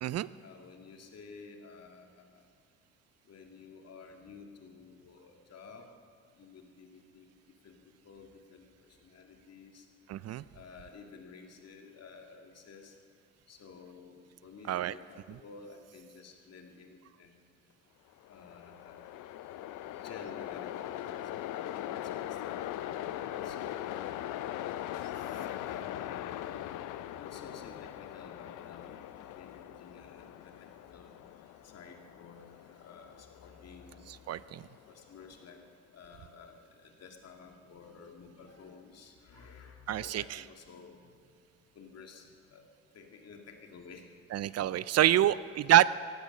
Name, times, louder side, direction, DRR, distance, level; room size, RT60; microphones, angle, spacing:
voice 1, 0.4-2.5 3.3-5.9 6.4-7.3 7.6-7.8 8.0-8.6 9.0-9.9 10.5-13.0 13.5-17.4 18.3-19.0 19.9-24.3 25.1-26.2 27.1-29.1 29.3-30.5 30.9-31.1 31.6-34.1 34.8-35.7 35.9-41.1 41.7-42.6 42.9-44.0 45.2-45.4, left 5 dB, 55° left, 3 dB, 2.1 m, -52 dB
voice 2, 10.1-10.4 14.7-14.9 34.3-34.6 39.9-40.4 44.3-45.9, right 12 dB, 55° right, 18 dB, 0.4 m, -26 dB
Train, 18.2-35.4, left 12 dB, 85° left, 0.6 m, -41 dB
16.5 x 12.0 x 6.6 m, 2.3 s
cardioid pair, 90°, 30 cm